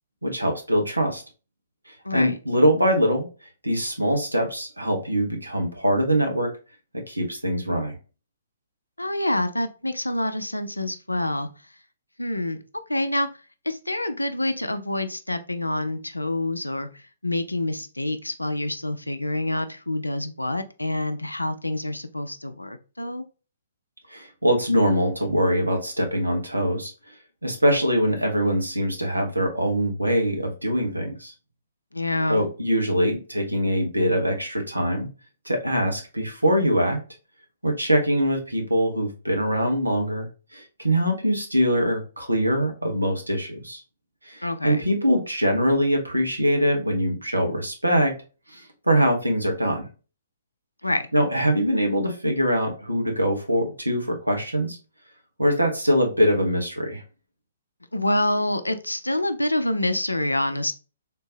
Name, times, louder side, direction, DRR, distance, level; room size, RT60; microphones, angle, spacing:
voice 1, 0.2-1.2 2.1-3.3 3.6-6.5 6.9-8.0 24.1-26.9 27.4-31.3 32.3-35.1 35.4-37.0 37.6-43.8 44.2-48.1 48.5-49.9 51.1-54.8 55.4-57.0, equal, 85° right, 3 dB, 1.0 m, -23 dB
voice 2, 2.0-2.4 9.0-11.5 12.2-12.6 12.9-13.3 13.7-16.9 17.2-23.2 31.9-32.4 44.4-44.8 50.8-51.1 57.9-60.7, left 1 dB, 85° left, 9 dB, 0.4 m, -27 dB
3.6 x 2.7 x 2.7 m, 0.33 s
figure-of-eight pair, 125°, 0 cm